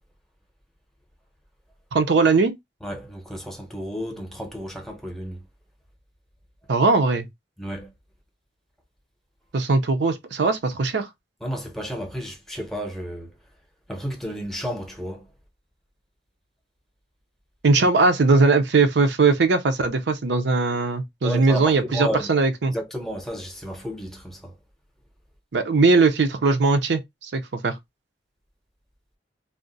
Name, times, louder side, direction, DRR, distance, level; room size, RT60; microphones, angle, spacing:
voice 1, 1.9-2.5 6.7-7.3 9.5-11.1 17.6-22.7 25.5-27.8, right 3 dB, 70° right, 0.5 m, -20 dB
voice 2, 2.8-5.4 7.6-7.9 11.4-13.3 13.9-15.3 21.2-22.3 22.7-24.5, equal, ahead, 0.7 m, -32 dB
2.4 x 2.1 x 3.8 m
head